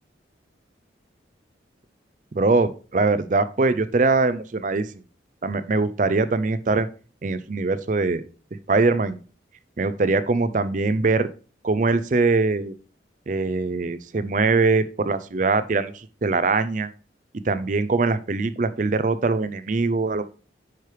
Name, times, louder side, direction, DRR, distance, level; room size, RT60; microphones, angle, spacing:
voice 1, 2.3-4.9 5.4-6.9 7.2-8.2 8.7-9.2 9.8-11.3 11.6-12.7 13.3-16.9 17.4-20.2, right 3 dB, 40° right, 13 dB, 0.5 m, -22 dB
9.3 x 4.7 x 3.3 m, 0.36 s
head